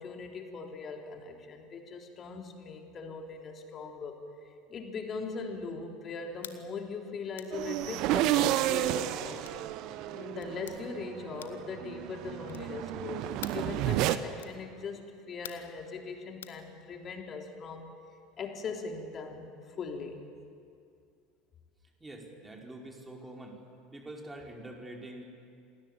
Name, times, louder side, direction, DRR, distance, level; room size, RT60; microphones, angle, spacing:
voice 1, 0.0-4.2 4.7-9.5 10.1-17.9 18.4-20.3, left 4 dB, 35° left, 3 dB, 3.6 m, -40 dB
sound 1, 6.4-6.6 7.3-7.6 8.4-8.6 9.4-9.7 10.4-10.8 11.4-11.7 12.5-12.8 13.4-13.7 14.4-14.6 15.4-15.7 16.4-16.6, left 10 dB, 70° left, 1.4 m, -46 dB
sound 2, 7.5-14.2, right 13 dB, 50° right, 1.1 m, -31 dB
voice 2, 22.0-23.6 23.9-25.2, right 1 dB, 15° right, 0 dB, 5.0 m, -45 dB
28.0 x 20.5 x 8.8 m, 2.4 s
figure-of-eight pair, 70°, 0 cm